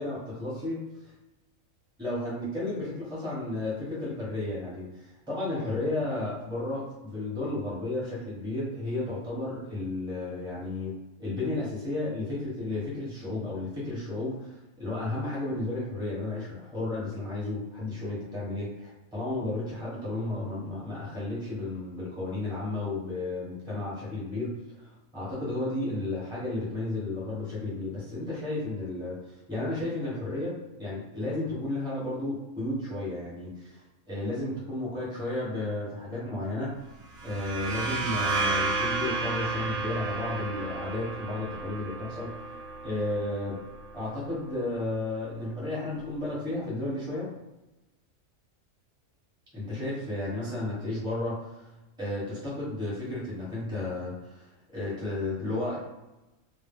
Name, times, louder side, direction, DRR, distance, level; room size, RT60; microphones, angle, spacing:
voice 1, 0.0-1.1 2.0-10.9 11.2-33.8 34.1-36.8 37.2-43.6 43.9-47.3 49.5-51.7 52.0-55.8, left 2 dB, 5° right, -7 dB, 0.9 m, -33 dB
sound 1, 37.1-44.6, right 3 dB, 85° right, 1.1 m, -32 dB
2.2 x 2.1 x 3.5 m, 1.0 s
omnidirectional pair, 1.4 m